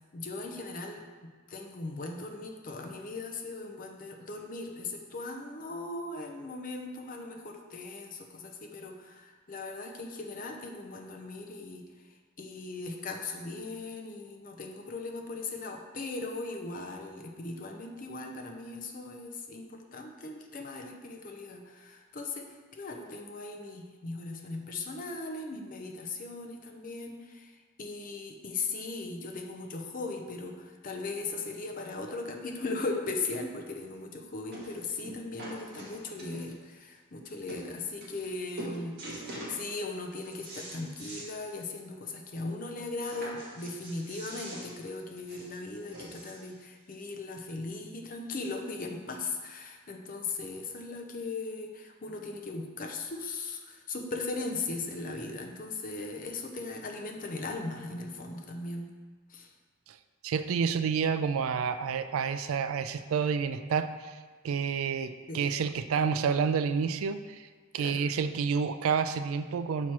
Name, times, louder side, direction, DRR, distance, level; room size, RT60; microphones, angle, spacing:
voice 1, 0.1-11.8 12.4-58.9 59.3-59.5 65.3-65.4 67.8-68.1, left 3 dB, 40° left, 3 dB, 0.6 m, -38 dB
sound 1, 33.8-33.9 34.5-34.8 35.0-36.6 37.2-37.3 37.5-37.6 38.0-38.3 38.6-39.6 40.0-41.3 41.7-41.8 42.1-42.2 43.1-46.5 47.3-47.4, right 1 dB, 50° right, 1.6 m, -43 dB
voice 2, 60.2-64.2 64.4-67.5 67.7-69.9, right 6 dB, 75° right, 11 dB, 0.3 m, -29 dB
6.0 x 4.3 x 4.7 m, 1.5 s
head